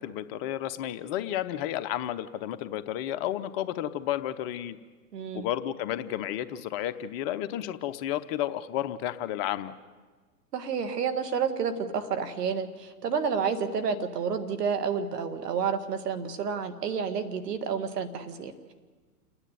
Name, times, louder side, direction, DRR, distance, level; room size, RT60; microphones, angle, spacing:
voice 1, 0.0-4.8 5.3-9.7, left 12 dB, 40° left, 11 dB, 0.8 m, -32 dB
voice 2, 5.1-5.5 10.5-18.7, right 6 dB, 75° right, 9 dB, 1.9 m, -30 dB
29.0 x 9.9 x 9.5 m, 1.4 s
hypercardioid pair, 115°, 48 cm